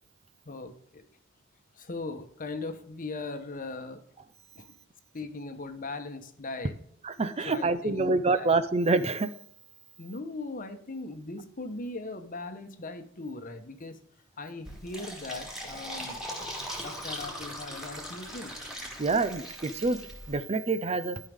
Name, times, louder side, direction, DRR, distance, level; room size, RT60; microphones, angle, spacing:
voice 1, 0.4-1.0 1.7-4.0 4.6-4.7 5.1-6.8 7.4-8.5 10.0-14.0 14.4-16.2 16.8-18.5, left 3 dB, 40° left, 8 dB, 1.0 m, -39 dB
voice 2, 7.0-9.3 19.0-20.0 20.3-21.2, right 3 dB, 30° right, 12 dB, 0.5 m, -26 dB
Fill (with liquid), 14.6-20.3, equal, ahead, 2.1 m, -40 dB
12.5 x 5.5 x 3.5 m, 0.68 s
head